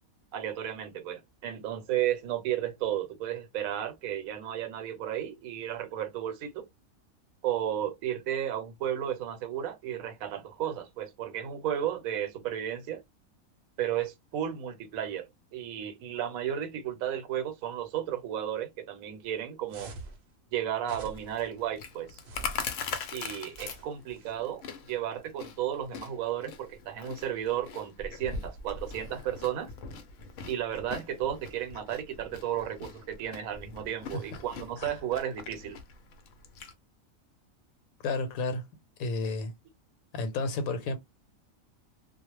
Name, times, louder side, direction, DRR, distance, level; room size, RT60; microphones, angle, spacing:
voice 1, 0.3-6.7 7.4-13.0 13.8-15.3 15.5-19.9 20.5-22.2 23.1-24.6 24.9-29.7 30.5-35.8, right 10 dB, 80° right, 1.0 m, -33 dB
sound 1, 19.7-20.2 20.8-21.5 22.2-22.8 23.5-24.3, right 2 dB, 55° right, 0.7 m, -45 dB
Chewing mastication, 21.1-36.7, left 5 dB, 70° left, 0.9 m, -42 dB
voice 2, 38.0-38.7 39.0-39.5 40.1-41.0, left 3 dB, 90° left, 1.1 m, -31 dB
2.4 x 2.1 x 3.0 m
omnidirectional pair, 1.4 m